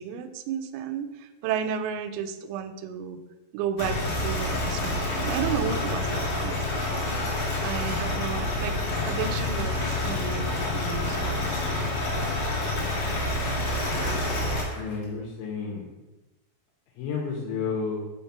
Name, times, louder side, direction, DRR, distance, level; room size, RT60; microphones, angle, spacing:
voice 1, 0.0-3.2 3.5-6.9 7.6-11.5, right 8 dB, 85° right, 8 dB, 2.9 m, -33 dB
sound 1, 3.8-14.6, left 2 dB, 60° left, 2.7 m, -28 dB
Bicycle, 11.8-15.0, left 2 dB, 35° left, 2.6 m, -42 dB
voice 2, 14.8-15.8 17.0-18.0, left 5 dB, 80° left, -3 dB, 3.2 m, -31 dB
7.2 x 3.4 x 5.7 m, 1.1 s
omnidirectional pair, 5.7 m